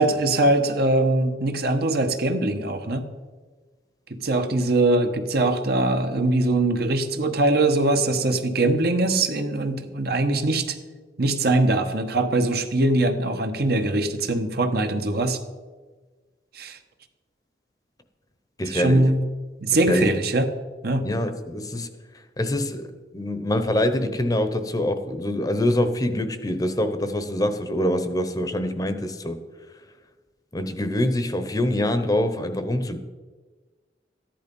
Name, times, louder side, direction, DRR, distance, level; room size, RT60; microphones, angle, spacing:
voice 1, 0.0-3.1 4.2-10.8 11.2-15.4 16.5-16.8 18.7-19.2 19.6-20.5 20.8-21.1, right 2 dB, 60° right, 1.2 m, -22 dB
voice 2, 18.6-19.1 19.9-20.1 21.0-21.9 22.4-29.4 30.5-33.0, left 1 dB, 20° left, 0.8 m, -25 dB
14.0 x 10.5 x 5.4 m
head